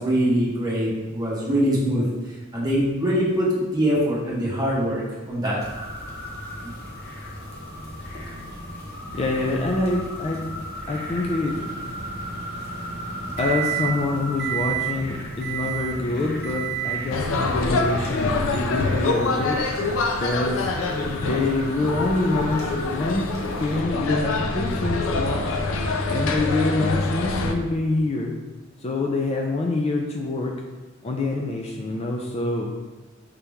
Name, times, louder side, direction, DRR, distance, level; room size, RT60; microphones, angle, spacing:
voice 1, 0.0-2.0 2.5-5.6 6.6-6.7, equal, 20° right, -6 dB, 1.2 m, -23 dB
sound 1, 5.6-23.8, equal, 55° left, 1.0 m, -36 dB
voice 2, 9.1-10.4 10.9-11.6 13.4-19.6 20.2-20.7 21.2-23.3 23.6-25.5 26.1-28.3 28.8-30.5 31.0-32.7, left 2 dB, 30° left, 0 dB, 0.4 m, -25 dB
Microwave oven, 11.5-14.1 14.4-15.0 15.4-16.0 16.4-17.0, right 15 dB, 60° right, 0.4 m, -31 dB
sound 2, 17.1-27.5, left 3 dB, 90° left, 0.5 m, -25 dB
5.2 x 2.9 x 3.5 m, 1.2 s
head